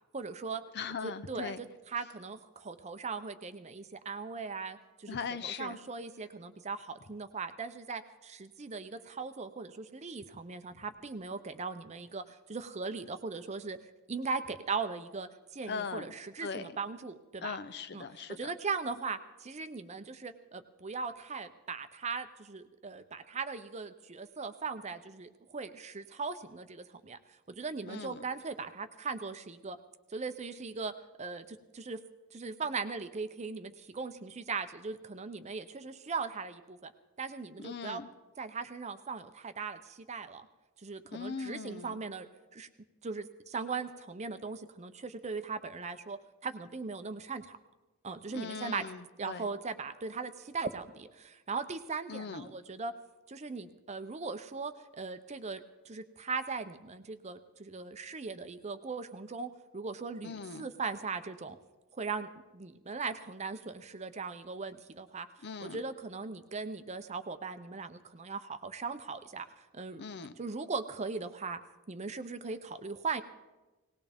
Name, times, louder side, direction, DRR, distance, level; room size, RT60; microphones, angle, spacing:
voice 1, 0.1-0.6 1.0-5.2 5.4-13.8 14.1-17.6 17.9-18.0 18.4-27.2 27.5-29.8 30.1-30.9 31.2-32.0 32.3-36.9 37.2-38.0 38.4-40.5 40.8-42.7 43.0-47.6 48.0-48.8 49.2-52.9 53.3-55.6 55.9-61.6 61.9-65.3 65.6-69.5 69.7-70.0 70.4-71.6 71.9-73.2, right 4 dB, 30° right, 10 dB, 0.6 m, -39 dB
voice 2, 0.7-1.6 5.1-5.8 15.7-16.1 16.4-16.7 17.4-18.5 27.9-28.2 37.6-38.1 41.1-42.0 48.3-49.5 52.1-52.5 60.2-60.7 65.4-65.8 70.0-70.3, left 5 dB, 50° left, 13 dB, 0.6 m, -40 dB
19.0 x 18.5 x 3.5 m, 1.1 s
head